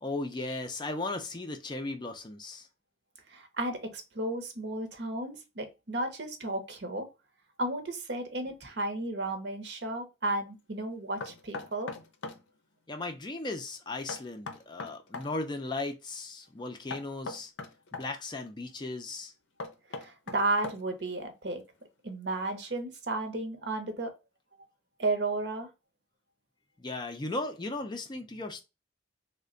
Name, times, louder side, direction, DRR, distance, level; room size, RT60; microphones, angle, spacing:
voice 1, 0.0-2.7 12.9-17.5 17.9-19.3 26.8-28.6, left 2 dB, 25° left, 0.4 m, -36 dB
voice 2, 3.3-7.1 7.6-11.9 20.0-21.6 22.0-24.1 25.0-25.7, right 2 dB, 60° right, 0.7 m, -33 dB
Knock, 11.2-12.4 14.1-15.3 16.9-18.1 19.6-21.0, left 3 dB, 75° left, 0.6 m, -40 dB
3.2 x 2.1 x 3.7 m
head